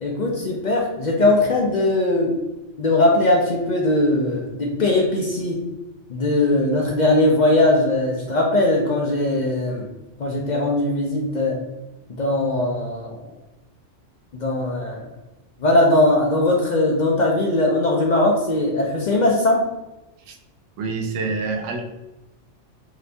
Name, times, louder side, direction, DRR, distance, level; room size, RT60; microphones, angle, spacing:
voice 1, 0.0-2.4 2.8-5.6 6.1-9.9 10.2-11.6 12.1-13.3 14.4-15.1 15.6-19.6, left 2 dB, 55° left, -1 dB, 0.5 m, -20 dB
voice 2, 20.8-21.9, right 3 dB, 85° right, 3 dB, 0.9 m, -27 dB
2.8 x 2.6 x 3.3 m, 1.0 s
omnidirectional pair, 1.2 m